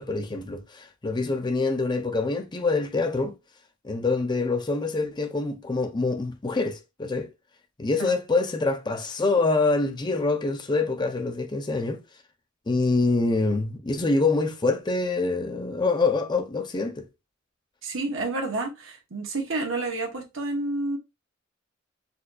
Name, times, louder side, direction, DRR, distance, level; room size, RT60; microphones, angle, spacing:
voice 1, 0.0-3.3 3.8-7.3 7.8-12.0 12.7-17.0, left 3 dB, 20° left, 0.5 m, -25 dB
voice 2, 17.8-21.0, right 2 dB, 65° right, 1.0 m, -30 dB
4.2 x 2.7 x 2.3 m
head